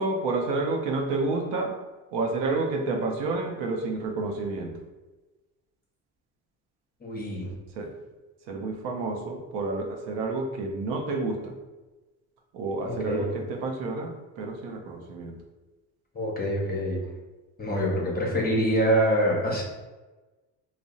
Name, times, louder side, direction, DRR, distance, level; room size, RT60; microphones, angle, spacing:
voice 1, 0.0-1.7 2.1-4.7 7.8-7.9 8.5-11.5 12.5-15.3, right 3 dB, 75° right, 1 dB, 0.6 m, -29 dB
voice 2, 7.0-7.5 12.8-13.3 16.1-17.0 17.6-19.6, equal, 20° left, -3 dB, 0.7 m, -25 dB
2.6 x 2.0 x 2.4 m, 1.2 s
supercardioid pair, 70°, 43 cm